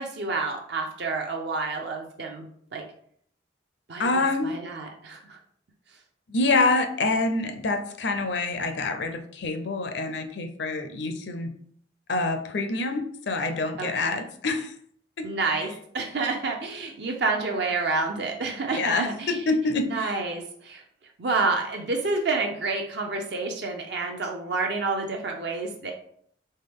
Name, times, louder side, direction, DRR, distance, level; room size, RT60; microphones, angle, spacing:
voice 1, 0.0-2.5 2.7-2.8 3.9-5.4 13.8-14.2 15.2-19.4 19.9-20.8 21.2-25.9, right 3 dB, 60° right, 2 dB, 0.6 m, -29 dB
voice 2, 4.0-4.6 6.3-11.5 12.1-14.7 15.2-15.3 18.7-20.1, left 3 dB, 65° left, 7 dB, 0.5 m, -26 dB
4.3 x 3.4 x 3.6 m, 0.64 s
head